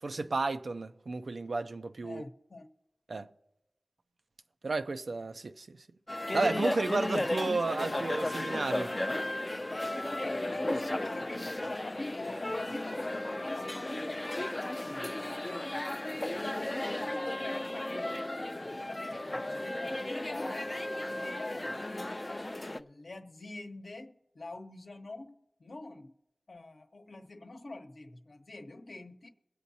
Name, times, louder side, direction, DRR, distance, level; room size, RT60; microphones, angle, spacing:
voice 1, 0.0-2.2 3.1-3.3 4.6-5.7 6.3-8.9, right 3 dB, 80° right, 0.5 m, -32 dB
voice 2, 2.0-2.7 10.1-14.5 14.8-15.1 15.4-16.4 16.9-18.2 18.5-20.8 21.0-22.1 22.6-26.1 26.5-29.3, left 2 dB, 70° left, 0.9 m, -45 dB
sound 1, 6.1-22.8, left 1 dB, 30° left, 0.5 m, -35 dB
22.5 x 8.2 x 2.8 m
wide cardioid pair, 60°, 0 cm